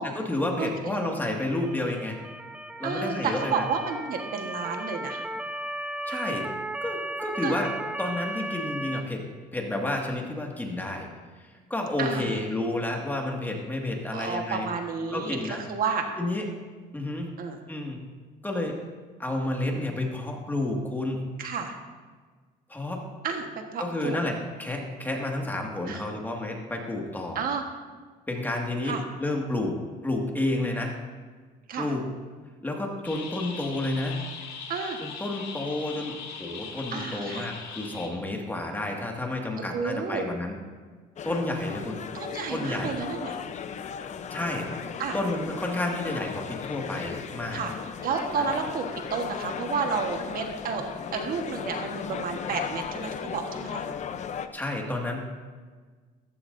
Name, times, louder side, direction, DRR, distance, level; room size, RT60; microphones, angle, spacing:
voice 1, 0.0-2.2 2.8-3.7 6.1-6.5 6.8-7.7 8.0-9.3 9.5-11.1 11.4-14.7 15.1-15.6 16.2-16.5 16.9-17.3 17.7-18.0 18.4-18.8 19.2-21.2 22.7-23.0 23.8-27.4 28.3-31.0 31.8-32.1 32.6-34.2 35.0-40.6 41.2-42.0 42.5-43.0 44.3-47.6 48.4-48.5 54.5-55.2, left 1 dB, 10° left, 0 dB, 2.0 m, -30 dB
voice 2, 0.6-1.0 2.8-5.2 7.4-7.6 12.0-12.4 14.1-16.0 17.4-17.6 21.4-21.7 23.2-23.5 23.7-24.2 25.9-26.0 27.3-27.6 28.8-29.0 31.7-31.9 34.7-35.0 36.9-37.5 39.6-40.2 42.1-43.4 45.0-45.2 47.5-47.7 48.0-50.8 51.1-53.9, right 5 dB, 60° right, 4 dB, 1.4 m, -31 dB
Motor vehicle (road) / Siren, 1.5-9.0, right 1 dB, 5° right, 0.7 m, -35 dB
sound 1, 33.0-38.1, left 5 dB, 75° left, 2.5 m, -40 dB
sound 2, 41.2-54.5, left 7 dB, 45° left, 0.7 m, -36 dB
14.5 x 14.5 x 2.7 m, 1.5 s
cardioid pair, 110°, 17 cm